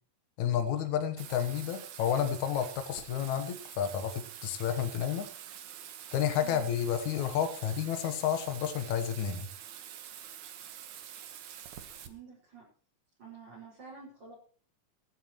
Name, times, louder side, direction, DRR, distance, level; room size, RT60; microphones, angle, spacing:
voice 1, 0.4-5.3 6.1-9.5, left 9 dB, 75° left, 8 dB, 2.6 m, -31 dB
Bathtub (filling or washing), 1.2-12.1, right 10 dB, 80° right, 2.8 m, -46 dB
voice 2, 12.1-12.7 13.2-14.3, right 6 dB, 35° right, -6 dB, 6.3 m, -49 dB
22.0 x 11.0 x 3.1 m, 0.40 s
omnidirectional pair, 3.4 m